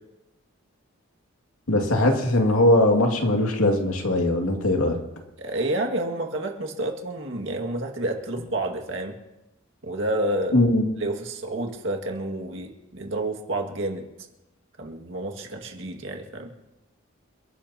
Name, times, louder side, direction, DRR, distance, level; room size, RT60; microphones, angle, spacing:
voice 1, 1.7-5.0 10.5-10.9, left 1 dB, 90° left, 2 dB, 2.4 m, -20 dB
voice 2, 5.4-9.1 9.8-10.5 11.0-14.0 14.8-16.5, right 1 dB, 60° right, 2 dB, 2.1 m, -29 dB
29.0 x 11.5 x 2.9 m, 0.96 s
head